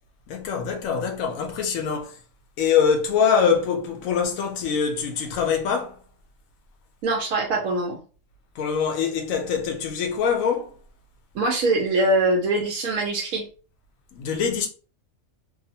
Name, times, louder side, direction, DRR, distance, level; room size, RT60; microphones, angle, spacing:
voice 1, 0.3-2.2 2.6-6.0 8.6-10.7 14.1-14.7, left 6 dB, 80° left, 1.0 m, -24 dB
voice 2, 7.0-8.0 11.3-13.5, right 2 dB, 85° right, 1.1 m, -23 dB
2.9 x 2.0 x 2.7 m
omnidirectional pair, 1.4 m